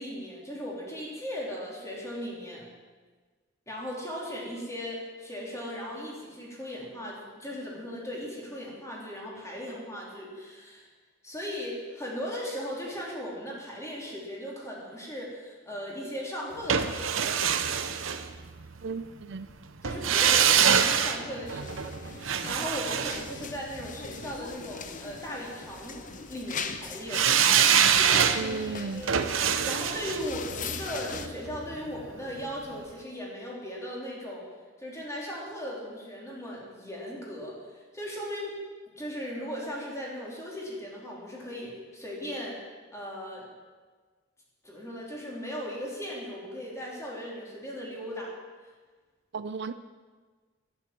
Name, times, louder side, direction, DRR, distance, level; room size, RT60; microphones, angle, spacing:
voice 1, 0.0-2.7 3.7-10.9 11.2-17.5 19.8-27.3 27.9-29.3 29.6-34.4 34.8-38.6 38.9-42.6 42.9-43.5 44.6-48.3, equal, 15° left, -3 dB, 3.4 m, -38 dB
sound 1, 16.7-18.8 19.8-24.1 27.1-32.1 32.4-32.5, right 8 dB, 85° right, 0.8 m, -25 dB
voice 2, 18.8-19.5 28.4-29.1 49.3-49.7, right 4 dB, 60° right, 12 dB, 0.5 m, -34 dB
sound 2, 21.5-31.3, left 5 dB, 40° left, 0.8 m, -41 dB
11.5 x 10.0 x 7.5 m, 1.4 s
head